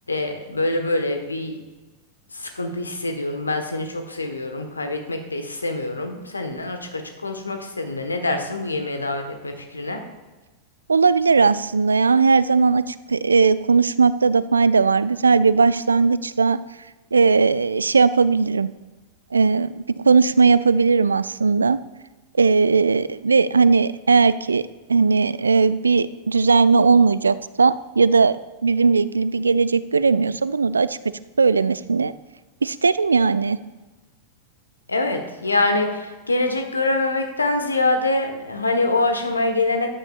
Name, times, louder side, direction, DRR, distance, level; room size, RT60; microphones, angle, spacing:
voice 1, 0.1-1.6 2.3-10.0 34.9-39.9, left 2 dB, 80° left, 5 dB, 1.2 m, -25 dB
voice 2, 10.9-16.6 17.1-18.7 19.3-21.8 22.4-28.4 28.6-31.0 31.4-32.1 32.6-33.6, right 4 dB, 75° right, 16 dB, 0.3 m, -18 dB
14.0 x 9.9 x 2.4 m, 1.2 s
figure-of-eight pair, 90°, 0 cm